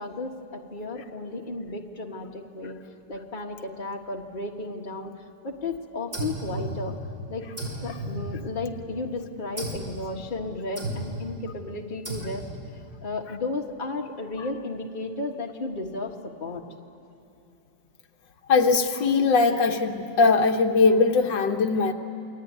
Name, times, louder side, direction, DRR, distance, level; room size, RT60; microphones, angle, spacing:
voice 1, 0.0-2.8 3.1-5.2 5.4-7.0 7.3-7.5 7.8-12.4 13.0-16.7, left 2 dB, 25° left, 1 dB, 1.8 m, -33 dB
sound 1, 6.1-7.2 7.6-8.9 9.6-10.0 10.8-11.3 12.1-12.7, right 1 dB, 30° right, 5.9 m, -34 dB
voice 2, 18.5-21.9, left 4 dB, 75° left, 5 dB, 1.8 m, -20 dB
28.0 x 22.0 x 9.7 m, 2.9 s
omnidirectional pair, 2.0 m